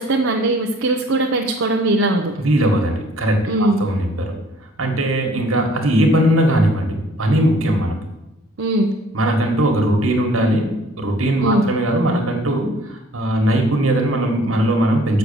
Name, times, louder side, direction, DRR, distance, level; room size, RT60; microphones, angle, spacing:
voice 1, 0.0-2.3 3.5-3.8 8.6-8.9 11.4-11.7, right 2 dB, 65° right, 1 dB, 0.8 m, -19 dB
voice 2, 2.4-4.4 4.8-8.0 9.1-10.7 11.0-15.2, right 1 dB, 85° right, 3 dB, 1.8 m, -19 dB
7.2 x 6.5 x 6.9 m, 0.94 s
head